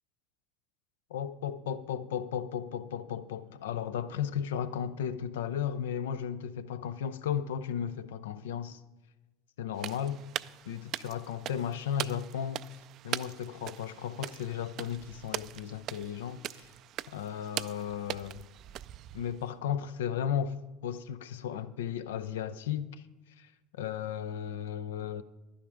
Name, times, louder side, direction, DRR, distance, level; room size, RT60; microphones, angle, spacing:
voice 1, 1.1-8.8 9.6-10.2 10.7-12.7 13.0-16.7 17.1-18.5 19.1-22.9 23.4-25.2, left 9 dB, 80° left, 0.5 m, -35 dB
sound 1, 9.8-19.5, right 13 dB, 50° right, 0.3 m, -41 dB
11.0 x 10.0 x 4.9 m
hypercardioid pair, 80°, 0 cm